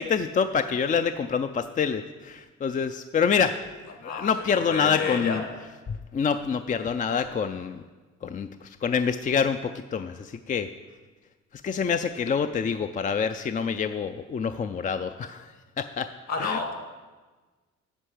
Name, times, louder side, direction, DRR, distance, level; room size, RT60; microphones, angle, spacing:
voice 1, 0.0-3.6 4.0-5.4 5.9-7.8 8.2-10.7 11.6-15.5 15.8-16.1 16.4-16.6, left 6 dB, 25° left, 9 dB, 0.4 m, -26 dB
voice 2, 4.7-5.4 16.3-16.7, left 4 dB, 60° left, 3 dB, 2.0 m, -29 dB
8.1 x 5.6 x 7.7 m, 1.3 s
cardioid pair, 90°, 30 cm